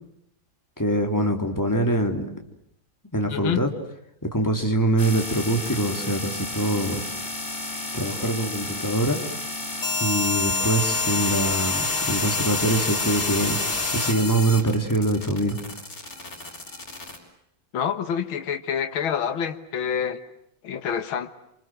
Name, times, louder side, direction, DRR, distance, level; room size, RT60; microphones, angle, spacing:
voice 1, 0.8-2.3 3.1-3.7 4.2-7.0 7.9-9.2 10.0-13.6 13.9-15.6, right 1 dB, 10° left, 3 dB, 3.4 m, -24 dB
voice 2, 3.3-3.7 17.7-20.2 20.6-21.3, left 8 dB, 80° left, 9 dB, 2.2 m, -27 dB
sound 1, 5.0-17.2, left 3 dB, 45° left, 5.7 m, -28 dB
28.0 x 26.5 x 7.8 m, 0.77 s
omnidirectional pair, 2.2 m